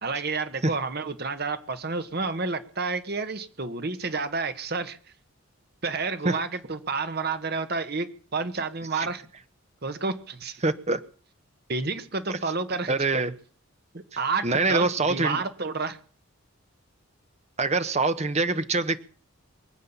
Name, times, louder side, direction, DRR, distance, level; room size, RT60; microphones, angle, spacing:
voice 1, 0.0-5.0 5.8-9.2 9.8-10.6 11.7-12.9 13.9-16.0, right 4 dB, 45° right, 10 dB, 1.2 m, -30 dB
voice 2, 10.6-11.0 12.3-12.4 12.9-13.3 14.4-15.4 17.6-19.0, right 3 dB, 30° right, 11 dB, 0.9 m, -24 dB
23.5 x 8.5 x 7.1 m, 0.43 s
head